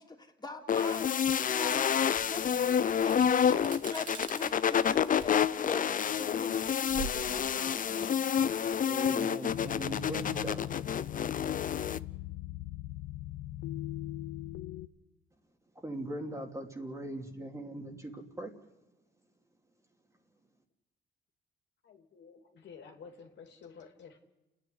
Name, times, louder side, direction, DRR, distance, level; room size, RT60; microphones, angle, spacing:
voice 1, 0.0-8.4, left 3 dB, 20° left, 1 dB, 3.4 m, -43 dB
sound 1, 0.7-12.0, left 8 dB, 45° left, 0.6 m, -29 dB
sound 2, 2.2-8.9, right 4 dB, 40° right, 2.7 m, -46 dB
voice 2, 8.9-10.7 15.7-18.5, right 1 dB, 15° right, 2 dB, 2.7 m, -40 dB
sound 3, 9.5-14.9, left 14 dB, 90° left, 0.8 m, -40 dB
voice 3, 21.8-24.2, left 6 dB, 65° left, 3 dB, 3.1 m, -51 dB
30.0 x 10.0 x 9.8 m, 1.0 s
cardioid pair, 90°, 20 cm